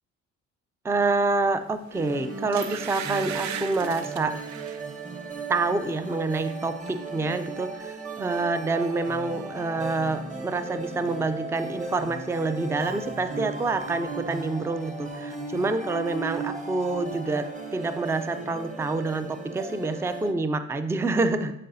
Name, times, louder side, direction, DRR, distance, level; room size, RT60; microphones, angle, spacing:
voice 1, 0.8-4.4 5.5-17.5 17.7-21.5, right 3 dB, 10° right, 10 dB, 0.4 m, -27 dB
sound 1, 1.8-2.0 2.5-4.8 5.3-5.5 5.9-6.6 6.9-7.0, right 8 dB, 65° right, 0.6 m, -37 dB
sound 2, 1.9-20.3, right 3 dB, 25° right, 0.9 m, -36 dB
10.5 x 4.7 x 2.7 m, 0.85 s
cardioid pair, 90°, 30 cm